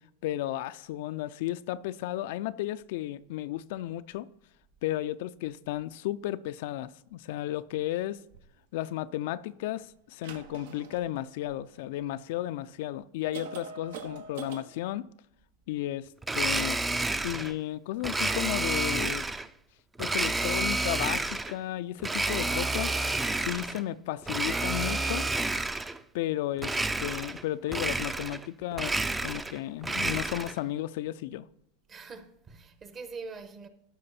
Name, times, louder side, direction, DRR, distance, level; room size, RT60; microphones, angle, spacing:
voice 1, 0.2-4.3 4.8-8.2 8.7-15.1 15.7-16.1 16.3-16.8 17.2-19.3 20.0-23.0 23.3-25.3 26.1-31.5, left 14 dB, 65° left, 0.4 m, -34 dB
sound 1, 8.3-8.4 10.1-12.0 12.7-12.8 13.3-14.6, right 5 dB, 75° right, 1.1 m, -44 dB
Domestic sounds home sounds, 16.2-17.5 18.0-19.5 20.0-21.6 22.0-23.8 24.2-26.0 26.6-27.4 27.7-28.5 28.7-30.6, right 2 dB, 10° right, 0.5 m, -30 dB
voice 2, 31.9-33.7, right 4 dB, 30° right, 1.1 m, -43 dB
12.0 x 4.9 x 4.2 m
hypercardioid pair, 105°, 0 cm